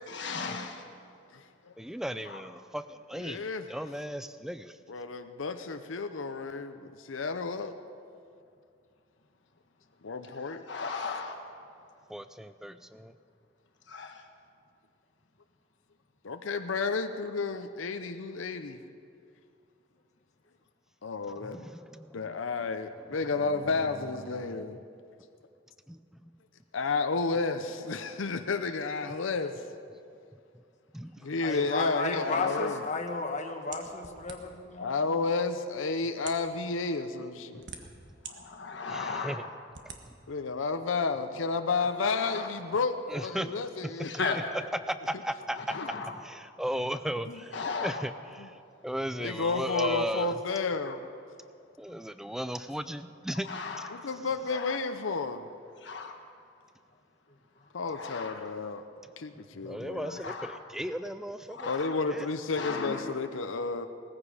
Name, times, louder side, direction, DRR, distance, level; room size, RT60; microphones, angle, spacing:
voice 1, 0.1-0.8 2.2-2.4 10.2-11.5 13.9-14.2 32.1-32.8 38.2-39.5 41.8-42.5 44.0-44.4 45.5-46.2 47.5-48.0 50.8-50.9 53.4-54.1 54.5-54.8 55.8-56.2 57.8-58.5 59.9-60.6 61.5-62.0 62.5-63.1, left 4 dB, 65° left, 3 dB, 1.4 m, -37 dB
voice 2, 1.8-4.8 12.1-13.1 21.4-22.3 23.5-23.6 24.3-24.7 26.2-26.3 30.9-31.3 38.9-39.4 40.1-40.2 43.1-43.5 43.8-44.2 44.8-45.8 46.2-48.1 48.4-48.6 48.8-50.4 51.8-53.9 59.6-61.8 62.1-62.3, equal, ahead, 11 dB, 0.4 m, -36 dB
voice 3, 3.2-3.7 4.9-7.7 10.0-10.6 16.2-18.8 21.0-21.7 22.1-24.8 26.7-29.5 31.2-32.8 34.8-37.6 40.3-44.3 45.8-45.9 47.3-47.4 48.4-48.5 49.2-51.0 53.9-55.5 57.7-58.8 59.2-60.2 61.6-63.9, left 4 dB, 80° left, 8 dB, 0.7 m, -31 dB
voice 4, 31.4-35.0, left 3 dB, 35° left, 3 dB, 1.2 m, -33 dB
sound 1, 33.7-34.7 35.5-35.6 36.1-36.5 37.3-38.3 38.9-39.0 39.7-40.0, right 6 dB, 65° right, 1.4 m, -44 dB
18.5 x 14.5 x 5.0 m, 2.4 s
head